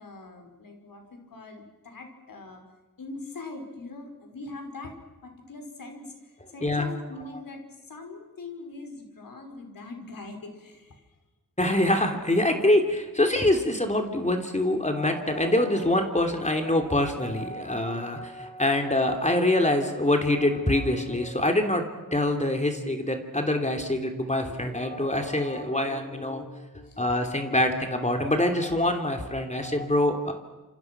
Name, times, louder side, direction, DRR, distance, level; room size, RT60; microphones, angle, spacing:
voice 1, 0.0-2.6 3.0-4.9 5.2-11.0 26.8-27.0, left 2 dB, 90° left, 4 dB, 5.3 m, -42 dB
voice 2, 11.6-30.3, left 1 dB, 20° left, 5 dB, 3.1 m, -25 dB
28.0 x 28.0 x 6.1 m, 1.2 s
wide cardioid pair, 90°, 33 cm